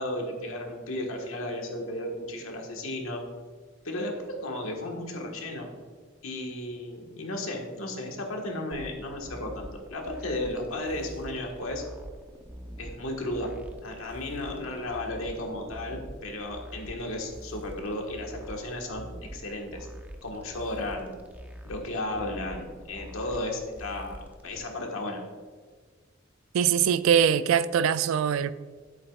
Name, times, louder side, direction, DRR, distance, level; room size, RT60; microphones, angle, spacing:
voice 1, 0.0-3.2 3.8-5.7 6.2-11.8 12.8-13.5 13.8-19.9 20.2-21.1 21.6-25.2, left 1 dB, 90° left, 1.5 m, -34 dB
sound 1, 8.7-24.6, equal, 10° right, 0.7 m, -45 dB
voice 2, 26.5-28.5, right 8 dB, 75° right, 0.3 m, -22 dB
11.0 x 8.2 x 2.4 m
head